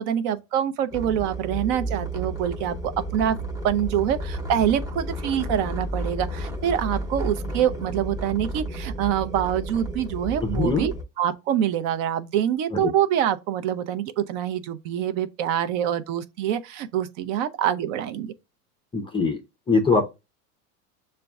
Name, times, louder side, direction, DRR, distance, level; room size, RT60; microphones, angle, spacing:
voice 1, 0.0-3.4 3.6-10.9 11.2-18.3, right 10 dB, 55° right, 0.6 m, -25 dB
sound 1, 0.9-11.0, right 1 dB, 5° right, 0.8 m, -32 dB
voice 2, 10.5-10.9 18.9-19.4 19.7-20.1, left 4 dB, 10° left, 0.4 m, -21 dB
6.6 x 2.2 x 2.3 m
hypercardioid pair, 100°, 47 cm